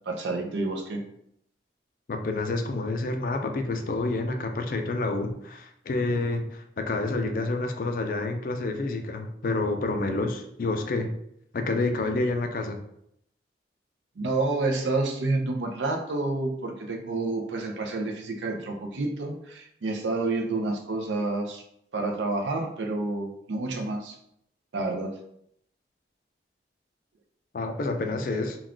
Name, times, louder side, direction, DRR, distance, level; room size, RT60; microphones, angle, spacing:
voice 1, 0.1-1.0 14.2-21.6 21.9-24.2 24.7-25.1, right 2 dB, 90° right, 3 dB, 0.5 m, -29 dB
voice 2, 2.1-11.1 11.5-12.8 27.5-28.6, left 2 dB, 50° left, 5 dB, 0.3 m, -28 dB
2.3 x 2.3 x 3.5 m, 0.73 s
head